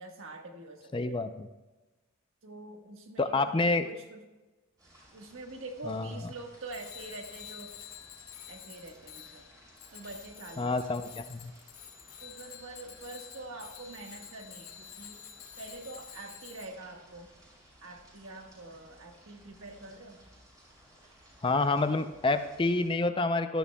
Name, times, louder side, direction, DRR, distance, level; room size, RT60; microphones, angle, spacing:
voice 1, 0.0-1.2 2.4-4.3 5.1-7.7 8.5-9.5 9.9-10.7 12.2-15.2 15.6-17.3 17.8-20.3, right 2 dB, 75° right, 3 dB, 1.4 m, -45 dB
voice 2, 0.9-1.5 3.2-3.9 5.9-6.1 10.6-11.5 21.4-23.6, left 3 dB, 25° left, 10 dB, 0.4 m, -28 dB
sound 1, 4.8-22.9, right 1 dB, 20° right, 4.3 m, -59 dB
Bicycle bell, 6.7-16.7, left 10 dB, 85° left, 1.4 m, -49 dB
16.5 x 12.5 x 2.2 m, 1.2 s
head